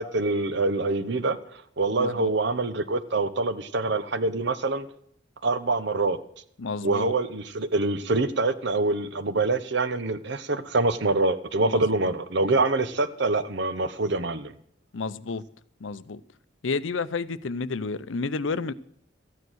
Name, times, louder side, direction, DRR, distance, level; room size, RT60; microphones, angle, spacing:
voice 1, 0.0-1.4 1.8-4.9 5.4-6.2 6.8-14.5, right 3 dB, 65° right, 1.0 m, -25 dB
voice 2, 2.0-2.3 6.6-7.1 11.6-11.8 14.9-15.4 15.8-16.2 16.6-18.7, left 4 dB, 75° left, 0.7 m, -30 dB
14.0 x 9.5 x 6.3 m
head